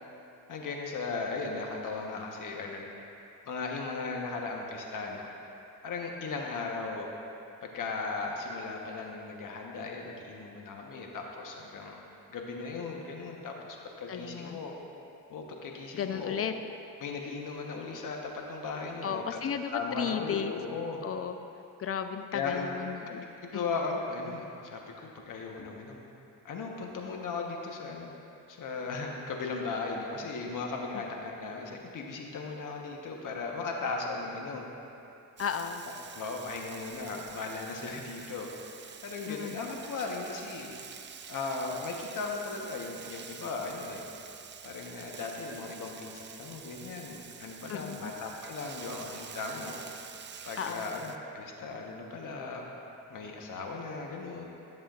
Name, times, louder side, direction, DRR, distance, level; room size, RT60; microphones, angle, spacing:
voice 1, 0.5-2.9 3.5-5.2 5.8-7.1 7.6-12.0 12.3-14.7 15.3-16.4 17.0-19.4 19.7-21.0 22.3-22.7 23.1-26.0 26.4-28.1 28.5-34.7 36.1-38.5 38.8-40.7 41.3-44.0 44.6-49.8 50.4-52.7 53.1-54.4, left 4 dB, 60° left, 1 dB, 1.2 m, -37 dB
voice 2, 14.1-14.6 16.0-16.5 19.0-20.5 21.0-21.4 21.8-23.3 23.5-23.6 35.4-35.8 39.3-39.6 47.7-48.1 50.6-50.8, left 7 dB, 40° left, 8 dB, 0.5 m, -34 dB
Frying (food), 35.4-51.2, right 7 dB, 30° right, 0.4 m, -47 dB
13.0 x 7.3 x 2.5 m, 2.8 s
cardioid pair, 90°, 36 cm